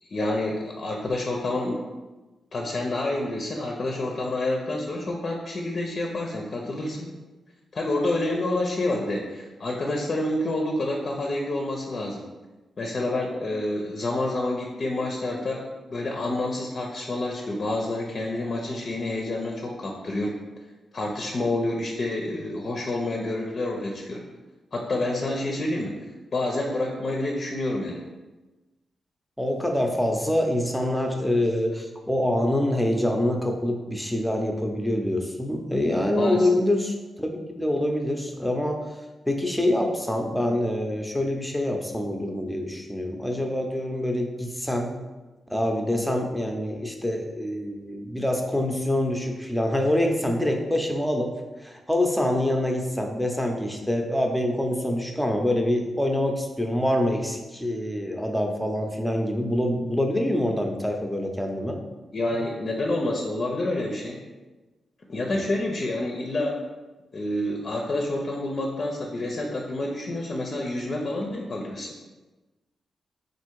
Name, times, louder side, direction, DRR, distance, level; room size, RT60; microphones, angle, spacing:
voice 1, 0.0-1.9 2.5-7.1 7.7-12.3 12.8-20.3 20.9-24.2 24.7-25.9 26.3-28.0 36.1-36.5 62.1-64.2 65.1-66.6 67.1-71.9, left 2 dB, 50° left, 0 dB, 0.5 m, -28 dB
voice 2, 29.4-38.8 39.3-44.9 45.5-51.3 51.6-61.8 65.3-65.4, left 1 dB, 5° left, 2 dB, 0.6 m, -25 dB
3.5 x 2.6 x 4.5 m, 1.2 s
cardioid pair, 85°, 0 cm